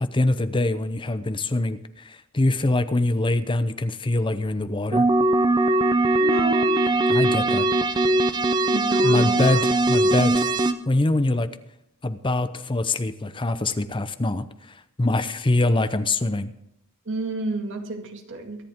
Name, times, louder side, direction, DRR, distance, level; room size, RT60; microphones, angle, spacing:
voice 1, 0.0-5.1 7.1-7.7 8.6-8.7 9.0-10.5 10.9-11.5 12.0-14.5 15.0-16.5, left 2 dB, 25° left, 11 dB, 0.7 m, -24 dB
sound 1, 4.9-10.7, right 2 dB, 20° right, 0.7 m, -20 dB
voice 2, 6.2-6.7 8.7-9.7 10.3-10.4 17.1-18.6, right 2 dB, 60° right, 3 dB, 2.1 m, -30 dB
23.0 x 10.5 x 3.7 m, 0.80 s
head